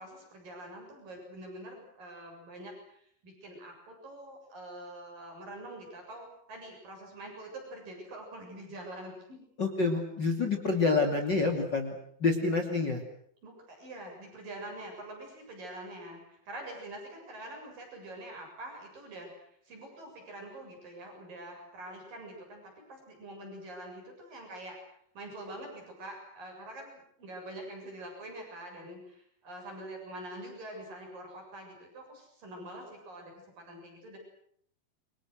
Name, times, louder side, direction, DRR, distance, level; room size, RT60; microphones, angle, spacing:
voice 1, 0.0-9.4 13.4-34.2, right 1 dB, 60° right, 1 dB, 9.1 m, -45 dB
voice 2, 9.6-13.0, left 3 dB, 30° left, 5 dB, 2.9 m, -28 dB
29.5 x 25.0 x 6.5 m, 0.66 s
omnidirectional pair, 4.4 m